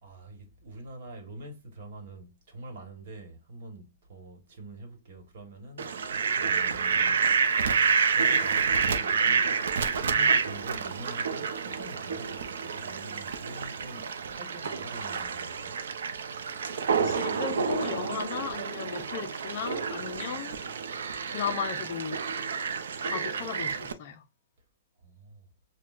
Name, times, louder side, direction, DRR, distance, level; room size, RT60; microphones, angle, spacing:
voice 1, 0.0-5.9 6.3-7.3 8.1-9.5 9.9-15.8 25.0-25.5, right 1 dB, 40° right, 1.2 m, -45 dB
Fowl, 5.8-23.9, right 6 dB, 70° right, 0.6 m, -29 dB
voice 2, 17.0-20.6 21.3-22.2 23.0-24.2, left 7 dB, 35° left, 0.4 m, -35 dB
6.0 x 2.2 x 2.4 m
hypercardioid pair, 180°, 0 cm